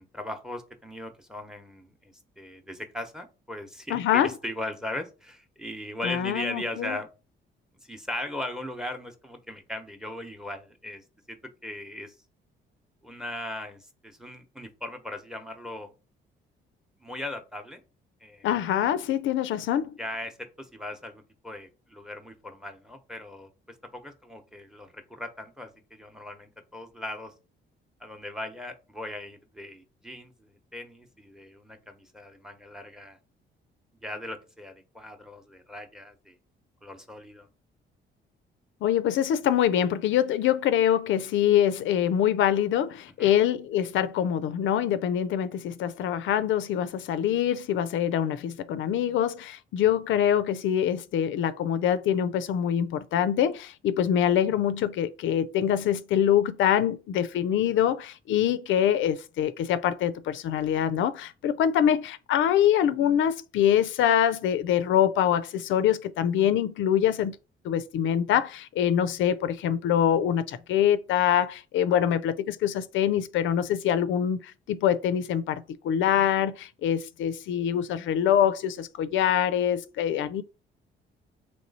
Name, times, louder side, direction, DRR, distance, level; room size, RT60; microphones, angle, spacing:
voice 1, 0.0-7.1 7.8-11.4 11.6-12.1 13.0-15.9 17.0-17.8 18.2-18.5 20.0-27.3 28.0-33.2 34.0-36.4 36.8-37.5 43.2-43.4 71.9-72.2, left 1 dB, 5° right, 0.8 m, -38 dB
voice 2, 3.9-4.3 6.0-7.0 18.4-20.0 38.8-67.4 67.6-80.4, left 10 dB, 75° left, 0.4 m, -24 dB
3.1 x 3.0 x 4.0 m
cardioid pair, 90°, 20 cm